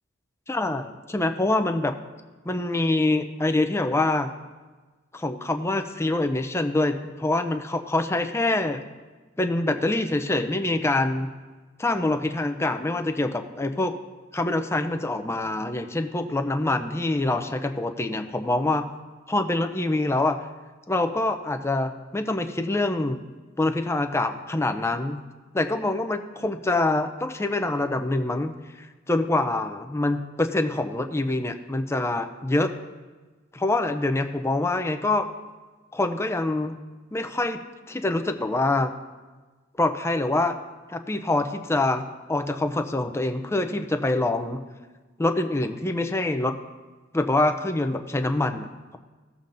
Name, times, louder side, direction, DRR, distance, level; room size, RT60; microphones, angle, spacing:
voice 1, 0.5-1.9 2.5-4.3 5.1-8.8 9.4-11.3 11.8-13.9 14.3-18.8 19.3-20.4 20.9-23.2 23.6-25.2 25.5-32.7 33.5-35.3 35.9-36.8 37.1-37.6 37.9-38.9 39.8-40.6 40.9-42.0 42.3-44.6 45.2-46.5 47.1-49.0, left 2 dB, 15° left, 7 dB, 0.5 m, -25 dB
17.0 x 7.0 x 2.6 m, 1.3 s
head